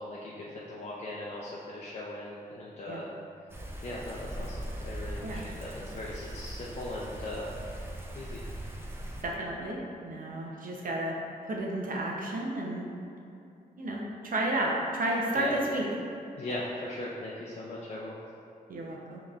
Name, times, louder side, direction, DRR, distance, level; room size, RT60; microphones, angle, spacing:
voice 1, 0.0-3.1 3.8-7.5 8.1-8.4 15.3-15.5 16.4-18.2, left 1 dB, 45° left, -6 dB, 0.5 m, -39 dB
sound 1, 3.5-9.2, right 1 dB, 15° right, 0.5 m, -40 dB
voice 2, 9.2-11.2 11.4-12.9 13.8-15.8 18.7-19.2, right 1 dB, 60° right, -2 dB, 0.7 m, -32 dB
5.2 x 3.0 x 2.4 m, 2.7 s
cardioid pair, 80°, 16 cm